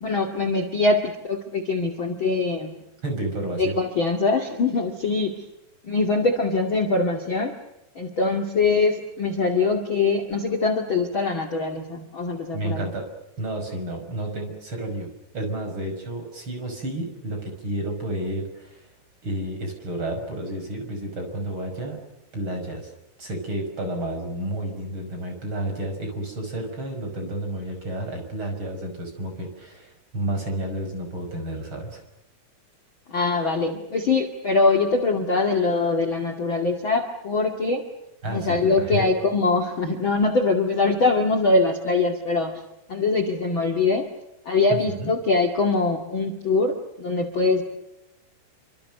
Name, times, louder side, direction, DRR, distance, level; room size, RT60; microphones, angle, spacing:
voice 1, 0.0-2.7 3.5-5.4 5.8-7.5 8.0-12.8 33.1-37.9 38.3-42.5 42.9-44.1 44.5-47.6, left 3 dB, 35° left, 2 dB, 2.4 m, -23 dB
voice 2, 3.0-3.8 12.5-13.1 13.4-15.1 15.3-18.9 19.2-22.0 22.3-22.9 23.2-32.0 38.2-39.1 44.7-45.1, right 1 dB, 30° right, 4 dB, 6.5 m, -31 dB
29.5 x 26.0 x 6.7 m, 0.91 s
omnidirectional pair, 4.7 m